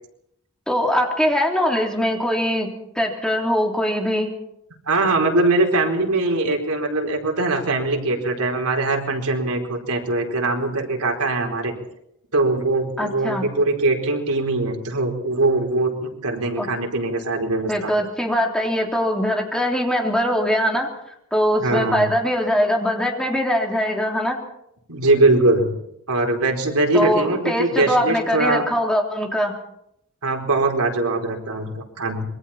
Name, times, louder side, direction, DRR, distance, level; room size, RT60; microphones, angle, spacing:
voice 1, 0.7-2.7 2.9-4.3 13.0-13.4 16.6-16.7 17.7-20.9 21.3-24.4 26.9-29.5, equal, 5° left, 0 dB, 3.5 m, -22 dB
voice 2, 4.9-11.7 12.3-17.9 21.6-22.0 24.9-25.7 26.1-28.6 30.2-32.2, right 2 dB, 90° right, 2 dB, 4.5 m, -21 dB
26.5 x 23.0 x 4.4 m, 0.76 s
head